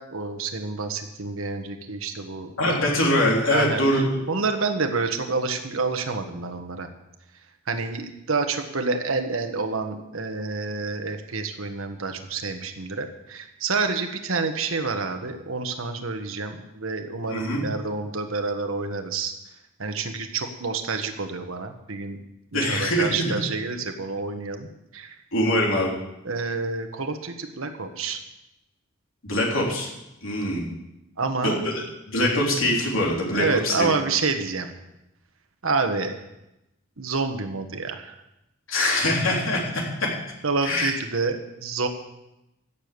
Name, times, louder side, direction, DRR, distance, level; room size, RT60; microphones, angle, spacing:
voice 1, 0.0-2.8 3.5-6.9 7.7-19.3 19.8-22.2 22.5-25.2 26.2-28.2 31.2-31.6 33.3-34.7 35.6-36.2 37.0-38.2 40.4-41.9, right 4 dB, 85° right, 6 dB, 1.4 m, -28 dB
voice 2, 2.6-4.2 17.3-17.6 22.5-23.3 25.3-25.9 29.2-29.9 30.2-30.7 31.4-33.9 38.7-40.1 40.6-40.9, left 1 dB, 75° left, -2 dB, 3.5 m, -23 dB
15.5 x 7.1 x 6.9 m, 0.91 s
head